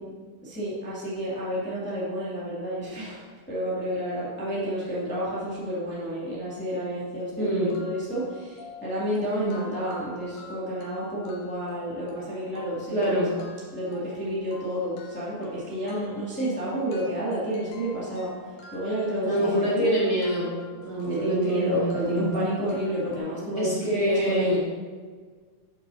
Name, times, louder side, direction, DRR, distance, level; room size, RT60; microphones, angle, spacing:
voice 1, 0.4-13.4 13.7-18.3 18.7-19.8 21.0-24.6, equal, 5° left, -9 dB, 1.9 m, -30 dB
sound 1, 7.2-7.3 7.7-23.2, left 4 dB, 85° left, 2.8 m, -48 dB
voice 2, 7.4-7.7 9.2-9.6 12.9-13.3 19.2-22.3 23.6-24.6, equal, 35° right, -7 dB, 2.2 m, -26 dB
11.5 x 7.1 x 2.8 m, 1.5 s
omnidirectional pair, 3.7 m